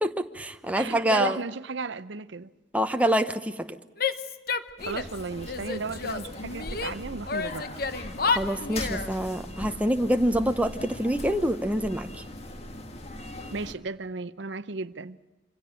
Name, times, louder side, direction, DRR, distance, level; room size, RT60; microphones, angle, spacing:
voice 1, 0.0-1.4 2.7-3.8 8.3-12.1, equal, 5° right, 0.9 m, -26 dB
voice 2, 0.7-2.5 4.8-7.8 13.5-15.2, right 4 dB, 70° right, 0.7 m, -34 dB
Female speech woman speaking / Yell, 4.0-5.2 5.5-6.9 7.3-9.1, left 5 dB, 50° left, 1.1 m, -30 dB
sound 1, 4.8-13.7, left 1 dB, 30° left, 1.8 m, -39 dB
25.5 x 17.0 x 8.9 m
head